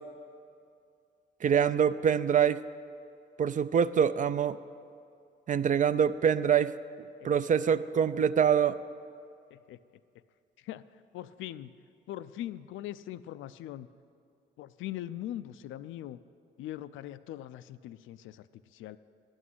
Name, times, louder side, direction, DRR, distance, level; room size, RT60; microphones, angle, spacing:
voice 1, 1.4-2.6 3.4-4.6 5.5-6.7 7.2-8.8, right 8 dB, 40° right, 14 dB, 0.4 m, -25 dB
voice 2, 11.1-11.7 12.1-13.9 14.6-16.2 16.6-18.5 18.7-19.0, left 13 dB, 80° left, 14 dB, 0.4 m, -41 dB
12.0 x 6.3 x 9.3 m, 2.3 s
cardioid pair, 90°, 20 cm